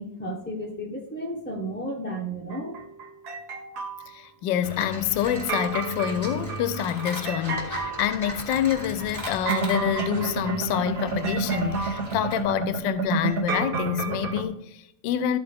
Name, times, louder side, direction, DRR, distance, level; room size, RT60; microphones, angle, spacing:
voice 1, 0.0-2.8, right 1 dB, 10° left, 0.6 m, -33 dB
sound 1, 2.5-4.1 5.3-14.4, right 4 dB, 60° right, 1.5 m, -30 dB
voice 2, 4.1-15.4, left 10 dB, 80° left, 1.3 m, -27 dB
sound 2, 4.6-12.4, equal, 10° right, 1.9 m, -38 dB
13.0 x 4.4 x 3.4 m
omnidirectional pair, 2.0 m